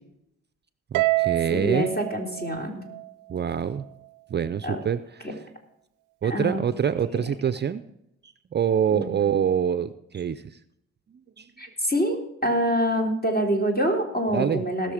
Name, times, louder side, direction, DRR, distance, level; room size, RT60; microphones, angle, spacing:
voice 1, 0.9-2.0 3.3-3.8 4.3-5.4 6.2-7.8 8.2-10.4 11.4-11.5 14.3-14.6, right 8 dB, 35° right, 12 dB, 0.5 m, -26 dB
Harp, 0.9-3.4, right 22 dB, 85° right, 0.5 m, -27 dB
voice 2, 1.5-2.8 4.6-4.8 6.2-6.6 8.9-9.2 11.6-14.9, equal, 30° left, 2 dB, 3.7 m, -26 dB
18.5 x 6.6 x 5.0 m, 0.82 s
cardioid pair, 90°, 30 cm